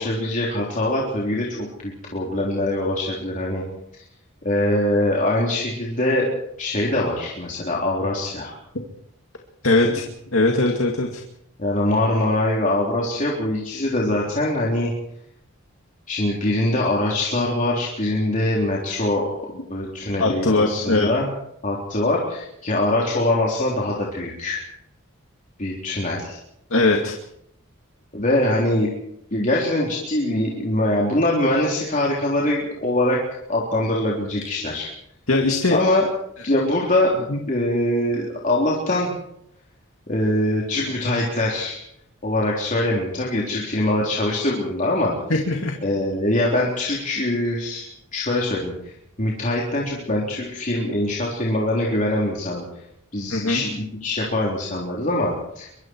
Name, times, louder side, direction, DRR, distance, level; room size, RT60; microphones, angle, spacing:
voice 1, 0.0-3.6 4.4-6.3 6.6-8.5 11.6-14.9 16.1-21.2 21.6-24.6 25.6-26.4 28.1-28.9 29.3-33.2 33.5-34.9 35.7-36.1 36.4-39.1 40.1-41.8 42.2-45.2 45.8-47.9 48.1-48.9 49.2-52.6 53.1-55.7, left 1 dB, 35° left, -4 dB, 3.8 m, -23 dB
voice 2, 9.6-10.0 10.3-11.2 20.2-21.1 26.7-27.1 35.3-35.8 37.3-37.4 45.3-45.7 53.3-53.6, left 2 dB, 70° left, 1 dB, 2.3 m, -20 dB
23.5 x 23.5 x 4.7 m, 0.75 s
head